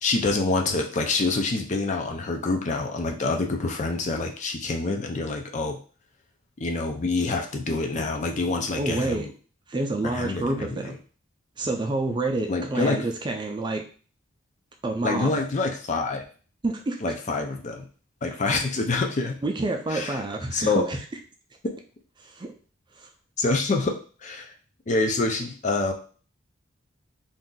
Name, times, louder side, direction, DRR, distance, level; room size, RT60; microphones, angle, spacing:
voice 1, 0.0-5.8 6.6-9.3 10.0-11.0 12.5-13.0 15.0-16.2 17.0-17.8 18.2-19.4 19.9-20.2 20.5-20.8 23.4-24.0 24.2-24.5 24.9-25.9, left 3 dB, 40° left, 3 dB, 0.4 m, -26 dB
voice 2, 8.7-9.3 9.7-10.9 11.6-13.8 14.8-15.4 16.6-17.1 19.4-21.0 22.2-22.5 23.0-23.1, right 2 dB, 25° right, 3 dB, 0.4 m, -28 dB
2.7 x 2.4 x 3.7 m, 0.39 s
head